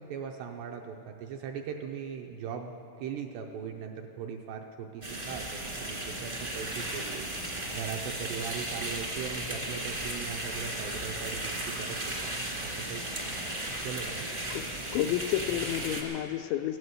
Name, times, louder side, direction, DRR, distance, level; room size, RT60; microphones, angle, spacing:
voice 1, 0.0-7.3 7.7-12.3 12.6-13.0 13.8-14.3, right 7 dB, 80° right, 2 dB, 2.6 m, -39 dB
sound 1, 5.0-16.0, right 1 dB, 35° right, 0.7 m, -35 dB
voice 2, 14.9-16.8, left 12 dB, 85° left, 7 dB, 2.7 m, -30 dB
15.5 x 11.0 x 7.9 m, 2.7 s
omnidirectional pair, 5.5 m